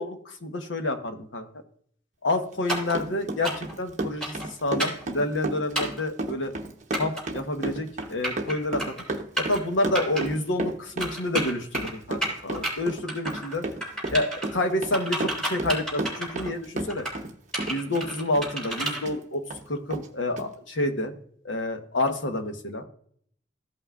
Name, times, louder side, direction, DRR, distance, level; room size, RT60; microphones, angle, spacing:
voice 1, 0.0-1.5 2.2-6.5 7.0-13.6 14.1-17.1 17.7-21.1 21.4-22.8, left 2 dB, 75° left, 6 dB, 1.1 m, -29 dB
Run, 2.5-17.3 17.6-19.2 19.5-19.6 19.9-20.1 20.4-20.5, right 2 dB, 40° right, 0.9 m, -33 dB
sound 1, 2.7-3.0 3.4-3.7 4.2-4.5 4.8-5.0 5.8-6.0 6.9-7.2 8.0-8.5 8.8-9.0 9.4-9.6 10.0-10.2 11.0-11.9 12.2-12.7 13.1-13.6 13.8-14.5 14.9-16.5 16.9-17.2 17.5-19.0, right 1 dB, 5° left, 3.4 m, -30 dB
14.5 x 5.7 x 2.4 m, 0.63 s
head